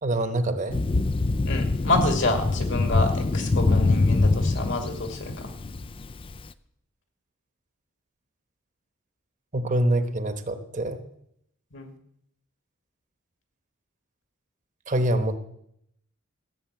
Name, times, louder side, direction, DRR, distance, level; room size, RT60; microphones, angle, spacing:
voice 1, 0.0-0.8 9.5-11.0 14.9-15.4, right 1 dB, 35° right, 9 dB, 1.1 m, -25 dB
Thunder, 0.7-6.4, left 3 dB, 25° left, 0.4 m, -24 dB
voice 2, 1.4-5.5 11.7-11.9, left 2 dB, 60° left, 5 dB, 2.3 m, -28 dB
15.0 x 6.9 x 8.8 m, 0.74 s
head